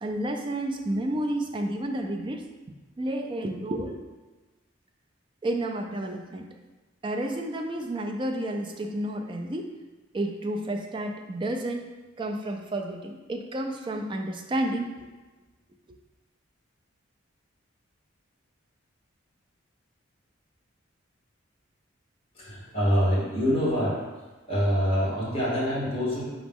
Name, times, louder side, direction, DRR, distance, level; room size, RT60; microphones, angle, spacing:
voice 1, 0.0-2.5 3.0-4.0 5.4-6.5 7.0-9.7 10.1-11.9 12.2-15.1, right 1 dB, 25° right, 3 dB, 0.3 m, -31 dB
voice 2, 22.3-24.0 24.5-26.2, equal, 30° left, -8 dB, 1.4 m, -25 dB
4.9 x 3.1 x 3.5 m, 1.2 s
head